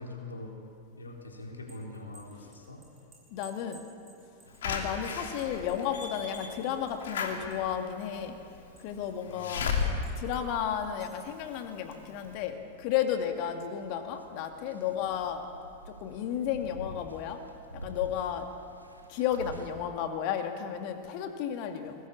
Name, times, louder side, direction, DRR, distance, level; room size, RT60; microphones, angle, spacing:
voice 1, 0.0-2.9 4.5-4.6 9.3-9.8, left 2 dB, 75° left, 1 dB, 3.9 m, -44 dB
sound 1, 1.4-7.7 8.0-9.2 9.8-10.4 10.8-11.4, right 5 dB, 20° right, 7.2 m, -58 dB
voice 2, 3.3-3.8 4.6-8.3 8.8-9.8 10.2-15.5 15.9-17.4 17.7-18.5 19.1-22.0, left 9 dB, 45° left, 6 dB, 2.3 m, -33 dB
Slam / Alarm, 4.6-11.4 11.9-12.0 12.2-12.3, left 5 dB, 60° left, 2.9 m, -35 dB
sound 2, 12.3-19.7, right 1 dB, 90° right, 1.9 m, -48 dB
23.0 x 19.5 x 8.6 m, 2.6 s
figure-of-eight pair, 90°, 0 cm